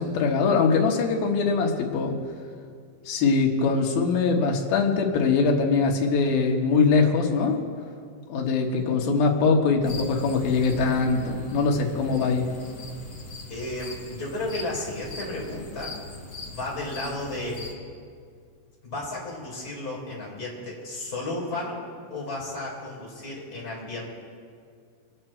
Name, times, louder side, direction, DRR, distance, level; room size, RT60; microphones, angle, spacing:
voice 1, 0.0-2.1 3.1-7.6 8.3-12.5, left 4 dB, 85° left, 0 dB, 3.1 m, -22 dB
sound 1, 9.8-17.7, left 2 dB, 40° left, 1.5 m, -40 dB
voice 2, 13.5-15.9 16.4-17.6 18.8-21.8 22.1-24.1, left 2 dB, 25° left, -4 dB, 4.2 m, -33 dB
25.0 x 9.6 x 4.5 m, 2.2 s
omnidirectional pair, 4.1 m